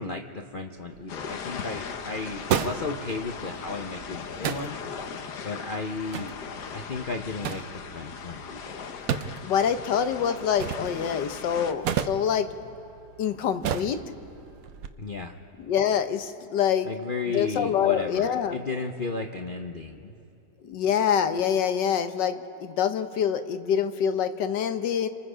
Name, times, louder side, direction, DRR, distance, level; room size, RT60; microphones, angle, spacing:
voice 1, 0.0-4.8 5.4-6.3 6.7-8.9 15.0-15.3 16.8-20.1, left 3 dB, 45° left, 3 dB, 0.7 m, -34 dB
sound 1, 0.8-14.9, right 8 dB, 65° right, 1.1 m, -35 dB
sound 2, 1.1-11.7, left 6 dB, 70° left, 1.5 m, -39 dB
voice 2, 9.4-12.5 13.2-14.0 15.7-16.9 17.3-18.6 20.6-25.1, left 8 dB, 90° left, 9 dB, 1.6 m, -25 dB
28.0 x 25.5 x 5.0 m, 2.7 s
omnidirectional pair, 1.8 m